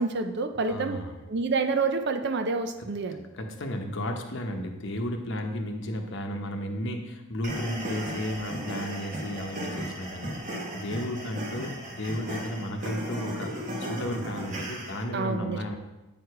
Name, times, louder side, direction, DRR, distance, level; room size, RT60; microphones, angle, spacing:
voice 1, 0.0-1.0 1.3-3.2 15.1-15.6, right 4 dB, 50° right, 8 dB, 0.6 m, -28 dB
voice 2, 0.7-1.2 3.1-10.3 10.7-13.5 13.8-15.8, equal, 55° left, 4 dB, 0.9 m, -33 dB
sound 1, 7.4-15.0, right 1 dB, 35° right, 1.2 m, -36 dB
8.8 x 4.9 x 4.7 m, 1.0 s
head